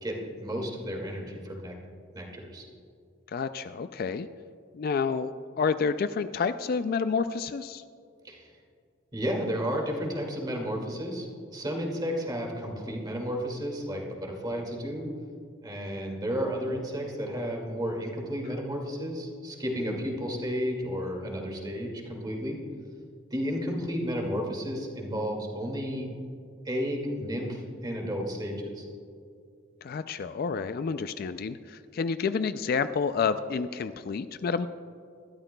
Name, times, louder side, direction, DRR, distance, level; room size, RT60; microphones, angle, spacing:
voice 1, 0.0-1.7 2.1-2.7 8.2-8.5 9.1-15.1 15.6-22.6 23.3-26.1 26.6-28.8, equal, 20° right, 0 dB, 2.1 m, -32 dB
voice 2, 3.3-4.3 4.7-7.8 29.8-34.7, left 5 dB, 50° left, 11 dB, 0.3 m, -29 dB
21.0 x 13.0 x 2.2 m, 2.4 s
head